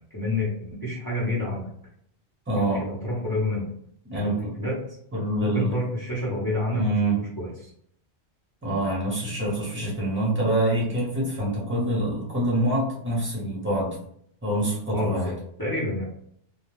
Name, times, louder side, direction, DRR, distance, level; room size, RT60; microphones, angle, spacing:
voice 1, 0.1-1.7 2.6-3.7 4.2-4.7 5.4-6.8 7.2-7.5 14.9-15.3 15.6-16.0, left 1 dB, 25° left, -6 dB, 0.7 m, -28 dB
voice 2, 2.5-2.9 4.1-4.5 5.1-5.7 6.7-7.2 8.6-14.0 14.4-15.3, right 1 dB, 10° right, -5 dB, 0.9 m, -25 dB
2.3 x 2.2 x 3.1 m, 0.68 s
omnidirectional pair, 1.2 m